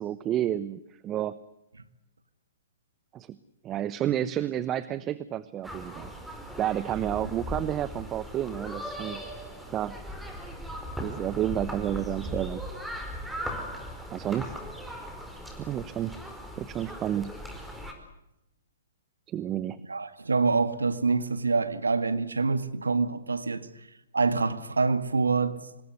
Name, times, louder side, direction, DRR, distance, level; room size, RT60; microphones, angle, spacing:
voice 1, 0.0-1.4 3.1-3.4 3.6-6.1 6.6-9.2 9.7-10.0 11.0-12.6 14.1-14.6 15.6-16.1 16.6-17.3 19.3-19.8, right 11 dB, 25° right, 0.9 m, -30 dB
sound 1, 5.6-17.9, equal, 5° right, 4.7 m, -38 dB
voice 2, 19.9-23.7 24.1-25.6, right 4 dB, 90° right, 1.9 m, -26 dB
26.0 x 20.0 x 8.1 m
hypercardioid pair, 130°, 0 cm